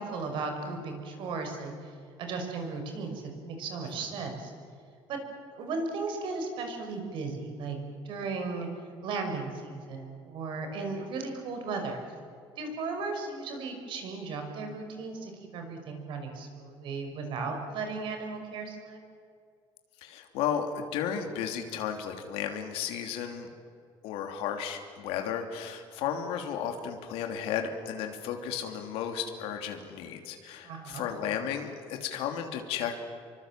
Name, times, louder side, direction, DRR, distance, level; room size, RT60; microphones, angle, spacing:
voice 1, 0.0-1.9 2.2-4.5 5.1-5.2 5.5-7.8 8.0-8.7 9.0-12.0 12.6-19.0 30.6-31.0, right 4 dB, 60° right, 5 dB, 5.6 m, -36 dB
voice 2, 20.0-23.5 24.0-33.0, left 8 dB, 80° left, 4 dB, 3.0 m, -34 dB
27.5 x 24.0 x 7.6 m, 2.4 s
cardioid pair, 145°, 10 cm